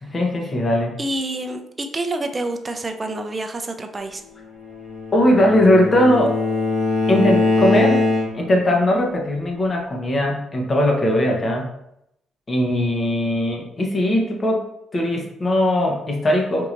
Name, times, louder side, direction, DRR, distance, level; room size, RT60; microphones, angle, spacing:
voice 1, 0.0-0.9 5.1-6.4 7.1-8.0 8.3-11.7 12.5-14.6 14.9-16.7, left 1 dB, 30° left, 0 dB, 1.0 m, -19 dB
voice 2, 1.0-4.2, right 2 dB, 25° right, 6 dB, 0.5 m, -27 dB
Bowed string instrument, 4.7-8.6, left 3 dB, 60° left, 1.2 m, -21 dB
4.5 x 2.8 x 2.5 m, 0.79 s
cardioid pair, 90°, 0 cm